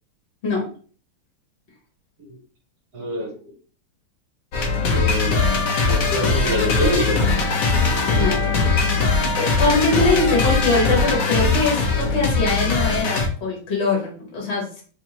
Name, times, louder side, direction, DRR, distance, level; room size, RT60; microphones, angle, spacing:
voice 1, 2.9-3.3 4.9-5.5 5.9-7.2, right 1 dB, 55° right, -1 dB, 1.2 m, -25 dB
sound 1, 4.5-13.3, left 4 dB, 70° left, 0.8 m, -20 dB
voice 2, 8.1-8.4 9.3-14.8, left 3 dB, 40° left, -2 dB, 1.1 m, -22 dB
3.6 x 3.2 x 2.8 m, 0.42 s
omnidirectional pair, 2.4 m